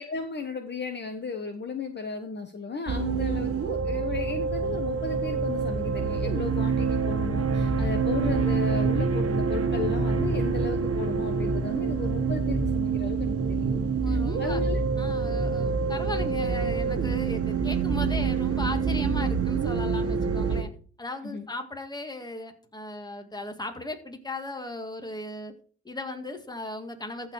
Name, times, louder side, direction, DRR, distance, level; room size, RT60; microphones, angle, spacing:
voice 1, 0.0-13.8 14.1-14.8 21.2-21.5, left 5 dB, 35° left, 6 dB, 1.1 m, -35 dB
sound 1, 2.9-20.6, right 5 dB, 50° right, 1.6 m, -26 dB
voice 2, 14.0-14.6 15.0-20.7 21.0-25.5 25.9-27.3, left 1 dB, 15° left, 6 dB, 1.9 m, -37 dB
14.5 x 4.8 x 4.7 m, 0.42 s
cardioid pair, 90°, 30 cm